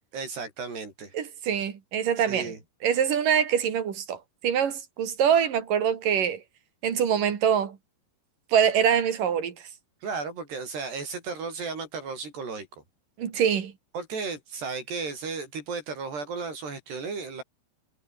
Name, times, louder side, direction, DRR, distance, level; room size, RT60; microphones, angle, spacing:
voice 1, 0.1-1.1 2.2-2.6 10.0-12.8 13.9-17.4, right 4 dB, 90° right, 9.7 m, -34 dB
voice 2, 1.1-2.5 2.8-4.2 4.4-6.4 6.8-7.8 8.5-9.5 13.2-13.7, right 8 dB, 60° right, 3.9 m, -24 dB
omnidirectional pair, 4.6 m